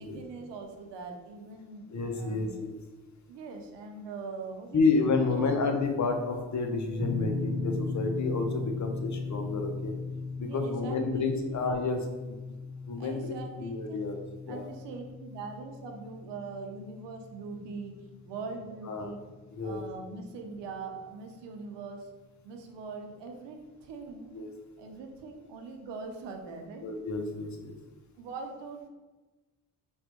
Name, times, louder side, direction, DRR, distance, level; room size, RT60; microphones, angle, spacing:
voice 1, 0.0-1.9 2.2-2.7 3.3-5.5 10.4-11.6 13.0-14.2 14.5-19.2 19.6-22.1 22.4-24.3 24.8-26.8 28.2-28.9, right 4 dB, 80° right, 3 dB, 0.7 m, -42 dB
voice 2, 1.9-2.8 4.7-9.9 10.4-12.6 12.9-14.2 14.4-14.7 18.9-19.1 19.5-19.8 24.3-24.5 26.8-27.7, left 3 dB, 40° left, 4 dB, 0.8 m, -30 dB
sound 1, 7.0-19.9, left 3 dB, 15° right, 1.4 m, -38 dB
4.3 x 2.5 x 2.9 m, 1.2 s
supercardioid pair, 45°, 42 cm